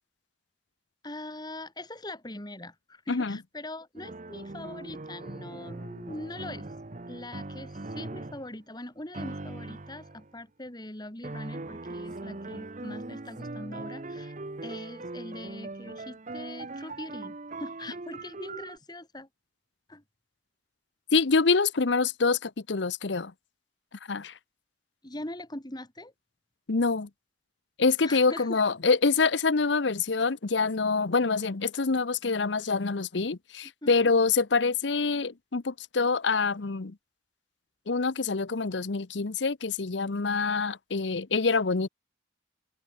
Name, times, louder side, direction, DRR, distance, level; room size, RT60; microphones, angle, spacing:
voice 1, 1.0-6.7 7.1-14.3 14.6-19.3 19.9-20.0 25.0-26.1 28.0-28.6 33.8-33.9, left 1 dB, 25° left, 2.8 m, -42 dB
sound 1, 4.0-8.6 9.1-10.3 11.2-18.8, right 2 dB, 40° right, 1.0 m, -40 dB
voice 2, 21.1-23.3 24.1-24.3 26.7-27.1 27.8-36.9 37.9-41.9, left 4 dB, 70° left, 0.9 m, -26 dB
open air
head